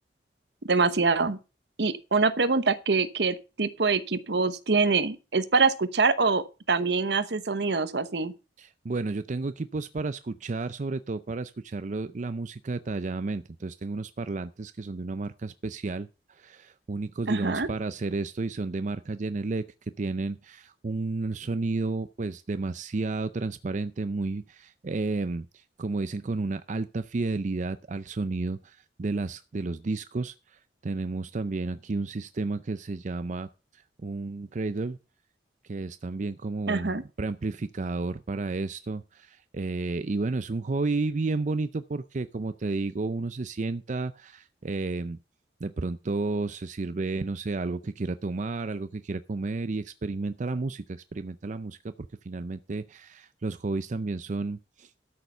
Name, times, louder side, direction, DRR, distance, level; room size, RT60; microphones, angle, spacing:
voice 1, 0.6-1.4 1.8-8.3 17.3-17.7 36.7-37.0, right 4 dB, 70° right, 1.0 m, -25 dB
voice 2, 8.6-19.6 20.0-35.0 35.7-45.2 45.6-51.9 52.2-54.9, right 3 dB, 45° right, 0.5 m, -32 dB
12.5 x 6.7 x 5.5 m
head